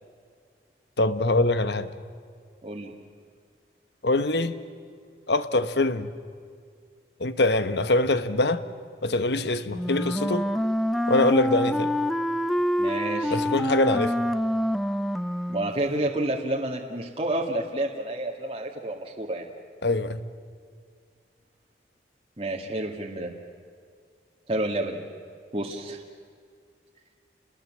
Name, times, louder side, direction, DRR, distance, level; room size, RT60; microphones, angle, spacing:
voice 1, 1.0-1.9 4.0-4.6 5.3-6.1 7.2-8.6 9.0-10.5 11.1-11.9 13.3-14.2 19.8-20.2, left 2 dB, 75° left, 12 dB, 1.3 m, -23 dB
Wind instrument woodwind instrument, 9.7-15.8, equal, ahead, 0.6 m, -26 dB
voice 2, 12.8-13.4 15.5-19.5 22.4-23.3 24.5-25.0 25.5-26.0, right 1 dB, 30° right, -1 dB, 2.0 m, -29 dB
29.5 x 21.0 x 7.6 m, 2.2 s
head